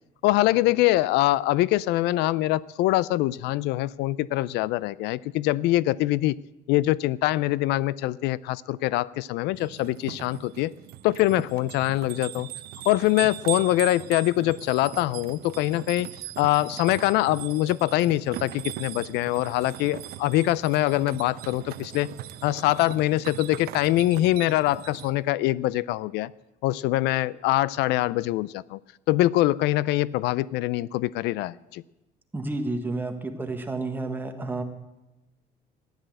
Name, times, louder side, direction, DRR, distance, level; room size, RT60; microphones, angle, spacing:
voice 1, 0.2-6.4 6.7-10.7 11.0-12.5 12.9-16.1 16.4-22.1 22.4-26.3 26.6-28.8 29.1-31.8, left 16 dB, 85° left, 20 dB, 0.4 m, -24 dB
sound 1, 9.6-25.1, right 13 dB, 65° right, 0.8 m, -39 dB
voice 2, 32.3-34.6, right 2 dB, 10° right, 5 dB, 1.4 m, -30 dB
14.0 x 10.5 x 7.7 m, 0.97 s
cardioid pair, 160°, 17 cm